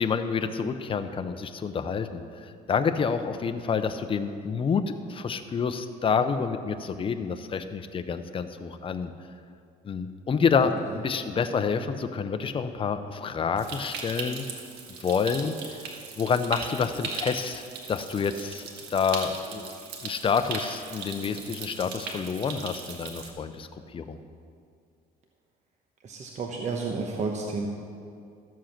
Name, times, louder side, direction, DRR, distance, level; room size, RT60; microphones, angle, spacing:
voice 1, 0.0-2.2 2.7-9.1 9.8-14.4 15.0-15.8 16.2-18.6 18.9-19.8 20.0-24.2, left 6 dB, 30° left, 8 dB, 0.7 m, -28 dB
Stream, 13.6-23.3, right 5 dB, 90° right, 1.5 m, -38 dB
voice 2, 26.0-27.7, right 4 dB, 45° right, 1 dB, 1.1 m, -31 dB
13.0 x 7.6 x 5.9 m, 2.4 s
cardioid pair, 110°, 17 cm